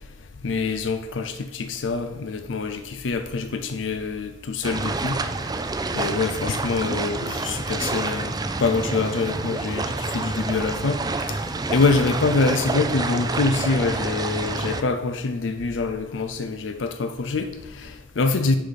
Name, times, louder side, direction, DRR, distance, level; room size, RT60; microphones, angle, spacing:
voice 1, 0.4-5.2 5.9-8.3 8.6-11.0 11.3-11.4 11.7-18.6, left 3 dB, 85° left, 8 dB, 0.5 m, -25 dB
sound 1, 4.6-14.8, right 3 dB, 20° right, 0.4 m, -28 dB
10.0 x 4.1 x 5.0 m, 0.97 s
head